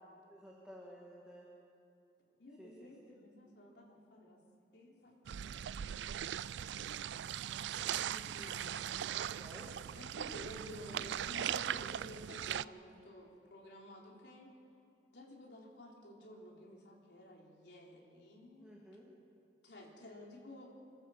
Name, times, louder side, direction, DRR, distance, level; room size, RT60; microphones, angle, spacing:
voice 1, 0.3-1.5 2.6-3.2 9.2-9.7 18.6-19.1, equal, 5° right, -4 dB, 2.1 m, -54 dB
voice 2, 2.4-4.4 4.7-5.2 6.1-7.1 7.5-8.8 9.9-14.5 15.1-18.7 19.6-20.7, left 1 dB, 80° left, -1 dB, 3.6 m, -53 dB
sound 1, 5.3-12.7, right 10 dB, 85° right, 0.4 m, -39 dB
26.5 x 12.5 x 7.8 m, 2.6 s
head